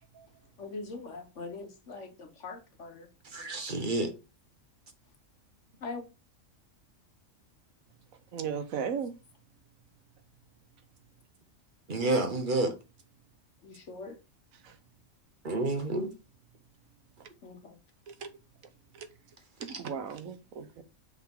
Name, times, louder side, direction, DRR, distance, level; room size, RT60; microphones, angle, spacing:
voice 1, 0.6-3.1 5.8-6.0 13.6-14.2 17.4-17.8, left 3 dB, 60° left, 1.5 m, -42 dB
voice 2, 3.2-4.1 11.9-12.8 15.4-16.1 19.7-19.8, right 2 dB, 40° right, 1.2 m, -29 dB
voice 3, 8.3-9.1 14.6-14.7 18.1-18.3 18.9-19.1 19.6-20.8, right 7 dB, 90° right, 1.3 m, -36 dB
6.4 x 4.9 x 3.7 m
omnidirectional pair, 1.4 m